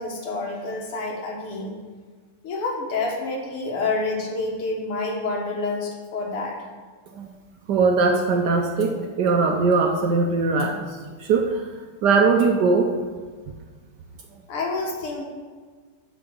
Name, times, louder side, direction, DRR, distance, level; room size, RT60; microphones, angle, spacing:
voice 1, 0.0-1.7 2.4-6.6 14.5-15.2, left 3 dB, 85° left, 0 dB, 2.4 m, -28 dB
voice 2, 7.7-11.6 12.0-12.9, right 4 dB, 65° right, 3 dB, 1.1 m, -20 dB
8.8 x 4.9 x 7.0 m, 1.5 s
omnidirectional pair, 2.4 m